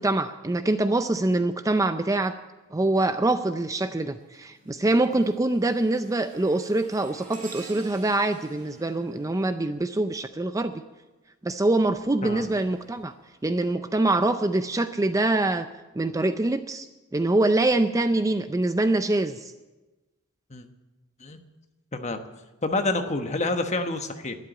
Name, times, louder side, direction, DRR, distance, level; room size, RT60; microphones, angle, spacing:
voice 1, 0.0-2.4 2.7-10.7 11.4-13.1 13.4-15.7 16.0-16.9 17.1-19.5, right 2 dB, 15° right, 10 dB, 0.4 m, -24 dB
sound 1, 2.7-3.1 3.6-10.4 11.7-13.9 14.5-14.7 15.6-15.7, right 2 dB, 40° right, 3.2 m, -50 dB
voice 2, 22.6-24.4, left 2 dB, 30° left, 7 dB, 1.1 m, -28 dB
12.0 x 11.0 x 9.0 m, 1.1 s
head